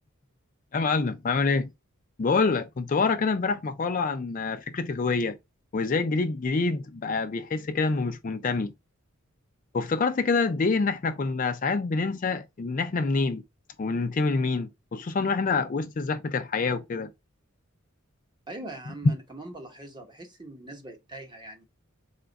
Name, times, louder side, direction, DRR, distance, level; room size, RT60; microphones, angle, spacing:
voice 1, 0.7-1.7 2.2-5.4 5.7-8.7 9.7-13.4 13.8-17.1 19.0-19.1, left 4 dB, 40° left, 0.4 m, -26 dB
voice 2, 18.5-21.6, right 2 dB, 20° right, 0.9 m, -42 dB
4.2 x 2.3 x 3.8 m
head